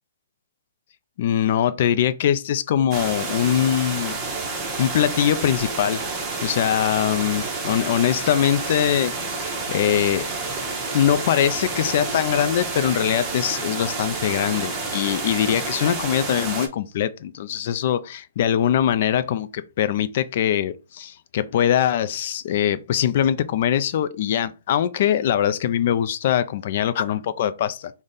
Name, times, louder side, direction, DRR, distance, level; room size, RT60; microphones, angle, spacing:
voice 1, 1.2-4.2 4.8-6.0 6.4-10.2 10.9-27.9, left 10 dB, 45° left, 0.3 m, -22 dB
sound 1, 2.9-16.7, right 3 dB, 15° right, 0.7 m, -29 dB
3.5 x 2.1 x 3.9 m
hypercardioid pair, 150°, 0 cm